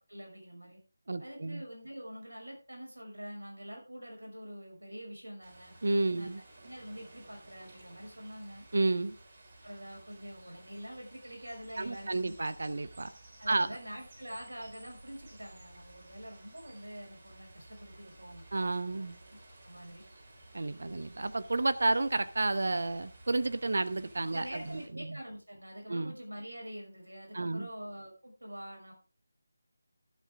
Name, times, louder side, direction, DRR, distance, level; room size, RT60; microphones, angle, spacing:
voice 1, 0.1-0.8 1.2-5.7 6.2-8.6 9.6-12.3 13.4-18.4 19.3-20.0 24.3-28.9, equal, 75° right, 1 dB, 5.9 m, -46 dB
voice 2, 1.1-1.6 5.8-6.4 8.7-9.1 11.8-13.1 13.5-13.7 18.5-19.2 20.5-25.2 25.9-26.1 27.3-27.7, right 2 dB, 55° right, 13 dB, 0.9 m, -31 dB
sound 1, 5.4-24.9, right 2 dB, 40° right, 4.0 m, -55 dB
12.0 x 10.5 x 3.6 m, 0.33 s
figure-of-eight pair, 160°, 0 cm